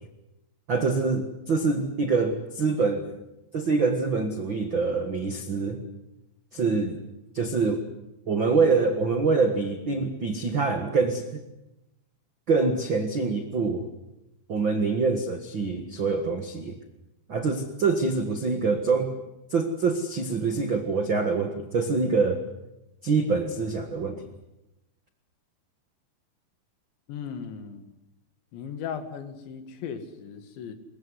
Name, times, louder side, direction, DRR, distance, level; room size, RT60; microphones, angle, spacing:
voice 1, 0.7-3.1 3.5-5.8 6.5-7.0 7.3-7.8 8.3-11.4 12.5-13.9 14.5-16.8 17.3-19.2 19.5-22.4 23.0-24.2, right 4 dB, 65° right, 6 dB, 1.1 m, -25 dB
voice 2, 27.1-27.9 28.5-30.8, left 7 dB, 75° left, 10 dB, 4.3 m, -37 dB
23.0 x 21.5 x 9.7 m, 0.91 s
omnidirectional pair, 5.3 m